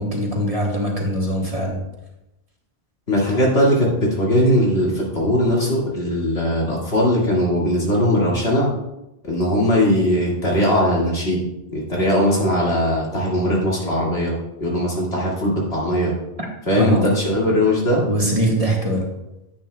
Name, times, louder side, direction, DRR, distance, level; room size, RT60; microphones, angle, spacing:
voice 1, 0.0-1.8 16.8-17.1 18.1-19.0, right 1 dB, 35° right, -1 dB, 1.4 m, -22 dB
voice 2, 3.1-8.7 9.2-11.4 11.7-14.3 14.6-16.1 16.7-18.0, equal, 75° left, -4 dB, 2.4 m, -19 dB
10.0 x 8.6 x 2.3 m, 0.92 s
omnidirectional pair, 1.1 m